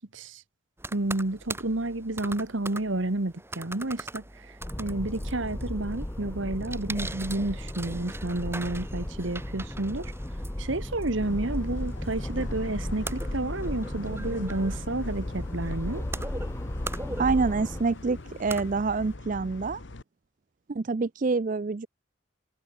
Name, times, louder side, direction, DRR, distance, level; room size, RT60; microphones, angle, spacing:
sound 1, 0.8-19.2, right 2 dB, 10° right, 2.2 m, -42 dB
voice 1, 0.9-4.2 4.8-10.1 10.6-16.0, right 2 dB, 65° right, 1.5 m, -30 dB
sound 2, 4.6-17.8, left 1 dB, 10° left, 0.7 m, -35 dB
sound 3, 11.2-20.0, left 2 dB, 60° left, 1.2 m, -41 dB
voice 2, 17.2-19.8 20.7-21.9, right 4 dB, 40° right, 0.4 m, -27 dB
head